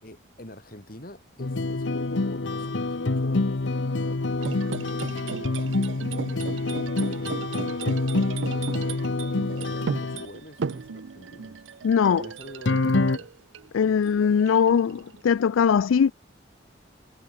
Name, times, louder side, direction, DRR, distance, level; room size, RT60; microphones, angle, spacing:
voice 1, 0.0-8.8 9.3-11.6 12.0-13.3 13.8-14.0, left 1 dB, 45° left, 4.5 m, -46 dB
sound 1, 1.4-10.3 12.7-13.2, left 2 dB, 70° left, 0.9 m, -26 dB
sound 2, 4.4-13.7 14.0-15.2, right 5 dB, 70° right, 0.5 m, -36 dB
voice 2, 11.8-12.2 13.7-16.1, left 7 dB, 90° left, 0.4 m, -21 dB
head